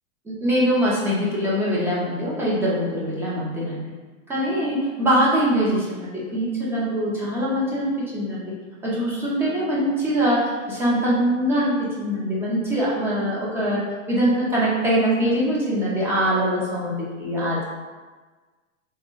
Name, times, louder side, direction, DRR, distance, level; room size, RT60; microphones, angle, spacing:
voice 1, 0.3-3.8 4.3-8.4 8.8-13.8 14.1-17.6, equal, 5° right, -7 dB, 0.4 m, -23 dB
3.3 x 2.1 x 3.0 m, 1.3 s
hypercardioid pair, 130°, 40 cm